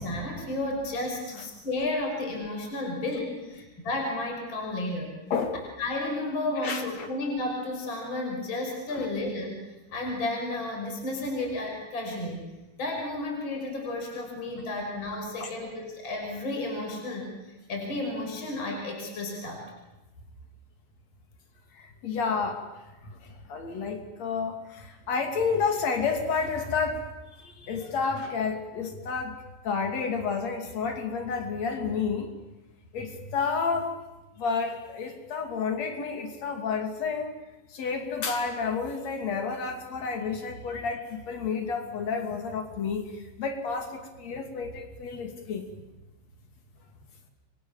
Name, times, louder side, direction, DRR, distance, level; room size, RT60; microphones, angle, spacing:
voice 1, 0.0-5.1 5.8-9.6 9.9-12.4 12.8-19.7, left 2 dB, 30° left, 0 dB, 6.4 m, -32 dB
voice 2, 5.3-5.6 6.6-7.1 8.9-9.1 15.4-15.5 21.7-22.6 23.2-27.1 27.4-29.4 29.6-32.3 32.9-34.0 34.4-37.3 37.7-45.7, left 5 dB, 45° left, 5 dB, 3.6 m, -30 dB
30.0 x 23.5 x 7.3 m, 1.0 s
omnidirectional pair, 4.6 m